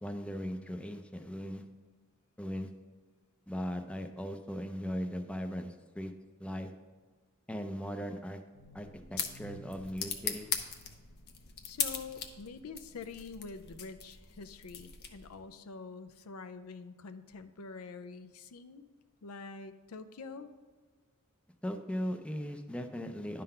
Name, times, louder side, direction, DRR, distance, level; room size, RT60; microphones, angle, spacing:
voice 1, 0.0-1.6 2.4-2.7 3.5-6.1 6.4-6.7 7.5-8.4 8.7-10.5 21.6-23.4, equal, 5° left, 6 dB, 0.4 m, -38 dB
sound 1, 8.5-15.5, left 7 dB, 50° left, 0.7 m, -40 dB
voice 2, 11.6-18.9 19.2-20.5, left 4 dB, 85° left, 10 dB, 0.5 m, -46 dB
10.5 x 3.9 x 5.5 m, 1.4 s
head